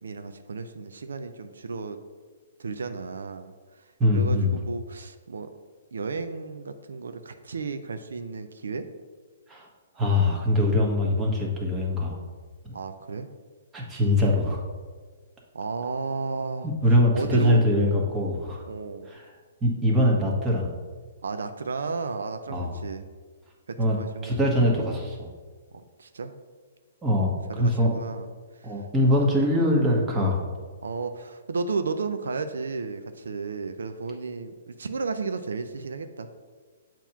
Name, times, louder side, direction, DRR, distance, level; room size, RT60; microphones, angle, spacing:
voice 1, 0.0-2.0 2.6-3.8 4.1-5.5 5.9-8.9 12.7-13.3 15.5-16.7 17.1-17.6 18.7-19.1 21.2-23.1 23.7-24.4 25.7-26.3 27.5-28.3 28.5-28.8 29.2-29.3 30.8-36.4, right 4 dB, 90° right, 9 dB, 0.4 m, -33 dB
voice 2, 4.0-4.5 9.5-9.7 10.0-12.2 12.6-12.7 13.7-14.6 16.6-18.6 19.1-19.2 19.6-20.7 22.5-22.7 23.8-24.0 24.2-25.3 27.0-27.3 27.6-27.9 28.6-30.4, left 1 dB, 15° right, -2 dB, 1.2 m, -23 dB
7.1 x 3.0 x 5.6 m, 1.5 s
hypercardioid pair, 150°, 0 cm